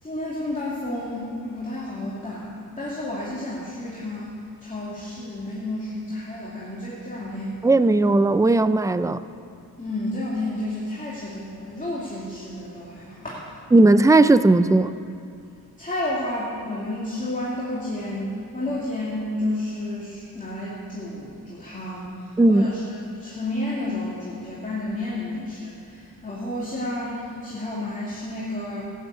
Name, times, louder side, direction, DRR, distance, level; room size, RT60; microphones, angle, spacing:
voice 1, 0.0-4.3 4.6-7.6 9.8-13.4 15.8-28.8, left 1 dB, 20° left, -7 dB, 2.6 m, -31 dB
voice 2, 7.6-9.2 13.7-14.9 22.4-22.7, right 2 dB, 10° right, 12 dB, 0.4 m, -16 dB
15.0 x 9.4 x 8.4 m, 2.4 s
wide cardioid pair, 105°, 38 cm